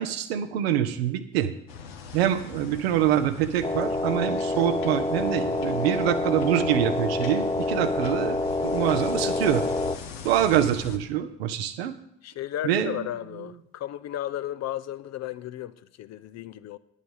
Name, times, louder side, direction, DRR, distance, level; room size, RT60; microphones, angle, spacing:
voice 1, 0.0-1.5 2.1-8.4 8.6-9.6 10.2-11.9 12.6-13.1, right 11 dB, 85° right, 0.7 m, -25 dB
sound 1, 1.7-11.0, left 6 dB, 85° left, 0.9 m, -41 dB
sound 2, 3.6-10.0, left 2 dB, 15° left, 0.9 m, -27 dB
voice 2, 12.2-16.8, left 12 dB, 60° left, 0.6 m, -34 dB
9.7 x 8.4 x 5.5 m
hypercardioid pair, 40°, 30 cm